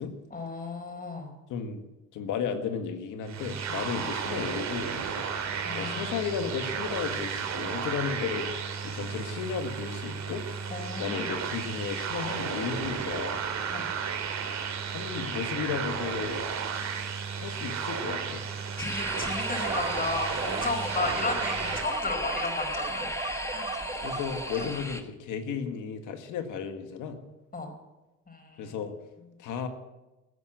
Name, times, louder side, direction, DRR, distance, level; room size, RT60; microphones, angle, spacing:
voice 1, 0.3-1.3 5.6-6.1 10.7-11.3 13.7-13.9 18.8-23.1 23.5-23.7 24.6-24.7 27.5-27.7 28.3-28.8, left 3 dB, 30° left, 5 dB, 4.7 m, -34 dB
voice 2, 1.5-1.8 2.1-5.3 5.7-10.7 11.0-13.4 14.9-16.4 17.3-18.4 24.0-27.2 28.6-28.9 29.4-29.7, left 7 dB, 85° left, 7 dB, 1.9 m, -34 dB
sound 1, 3.2-21.9, right 6 dB, 65° right, 2.5 m, -33 dB
sound 2, 18.8-25.0, left 1 dB, 10° left, 1.7 m, -37 dB
sound 3, 19.1-24.8, right 3 dB, 15° right, 4.9 m, -36 dB
15.5 x 9.4 x 9.1 m, 1.0 s
cardioid pair, 90°, 30 cm